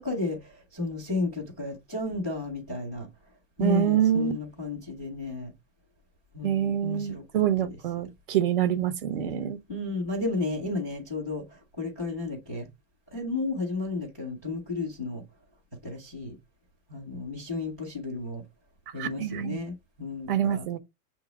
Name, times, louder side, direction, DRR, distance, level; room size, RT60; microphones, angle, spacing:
voice 1, 0.0-3.1 3.6-5.5 6.3-7.2 9.7-12.7 13.1-15.2 15.8-16.4 16.9-18.4 18.9-20.6, left 3 dB, 10° left, 0.4 m, -33 dB
voice 2, 3.6-4.3 6.4-9.6 19.0-19.6 20.3-20.8, right 9 dB, 35° right, 0.7 m, -26 dB
7.5 x 2.9 x 4.7 m
supercardioid pair, 175°, 46 cm